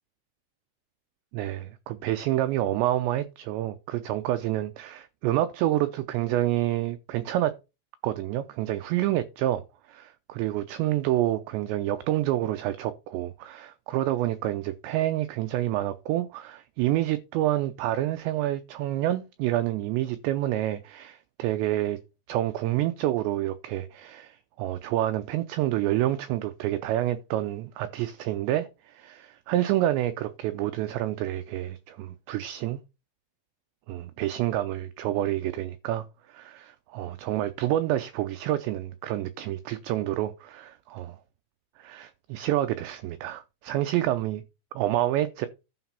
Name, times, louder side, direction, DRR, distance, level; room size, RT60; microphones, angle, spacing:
voice 1, 1.3-7.6 8.0-9.6 9.9-22.0 22.3-32.8 33.9-41.2 41.8-44.4 44.8-45.5, right 14 dB, 90° right, 2.5 m, -28 dB
12.0 x 5.1 x 5.5 m
omnidirectional pair, 5.8 m